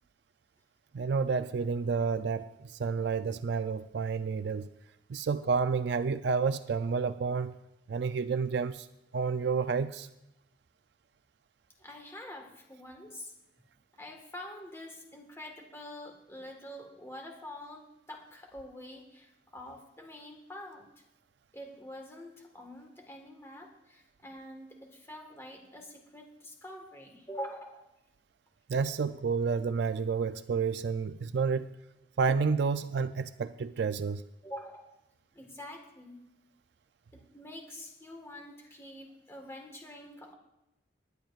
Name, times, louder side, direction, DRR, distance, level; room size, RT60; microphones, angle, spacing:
voice 1, 0.9-4.7 5.1-7.6 7.9-8.9 9.1-10.1 28.7-31.7 32.2-34.2, right 5 dB, 60° right, 11 dB, 0.4 m, -30 dB
voice 2, 11.8-13.3 14.0-20.9 21.5-27.9 34.4-34.9 35.3-36.2 37.1-40.3, left 1 dB, 15° left, 2 dB, 1.4 m, -46 dB
20.0 x 10.5 x 2.4 m, 0.90 s
head